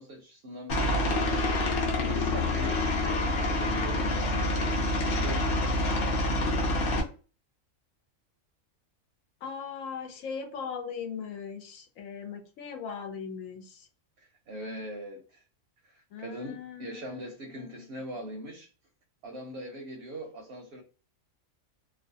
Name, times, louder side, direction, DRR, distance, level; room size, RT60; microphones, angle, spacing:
voice 1, 0.0-1.4 2.0-5.8 14.2-15.4 15.8-18.7 19.2-20.8, right 1 dB, 65° right, 0.7 m, -42 dB
Aircraft, 0.7-7.0, left 2 dB, 55° left, 0.8 m, -27 dB
voice 2, 9.4-13.9 16.1-17.2 17.6-17.9, left 6 dB, 85° left, 1.0 m, -39 dB
2.5 x 2.1 x 2.6 m
omnidirectional pair, 1.4 m